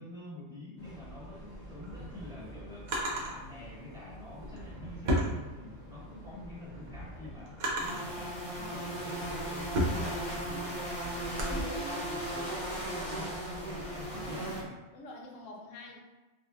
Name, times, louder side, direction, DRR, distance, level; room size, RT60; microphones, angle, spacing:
voice 1, 0.0-2.9 3.2-11.6 11.9-13.3 13.6-14.8, left 2 dB, 5° right, -12 dB, 1.3 m, -47 dB
Train, 0.8-14.7, right 1 dB, 75° left, 1.3 m, -48 dB
Drawer open or close, 1.7-3.3 4.4-6.0 6.5-8.1 8.8-11.6, equal, 55° right, 0.5 m, -34 dB
sound 1, 7.8-14.6, right 1 dB, 30° left, 0.9 m, -37 dB
voice 2, 11.4-12.3 14.9-16.0, equal, 90° left, -1 dB, 1.0 m, -45 dB
2.6 x 2.5 x 2.3 m, 1.1 s
omnidirectional pair, 1.3 m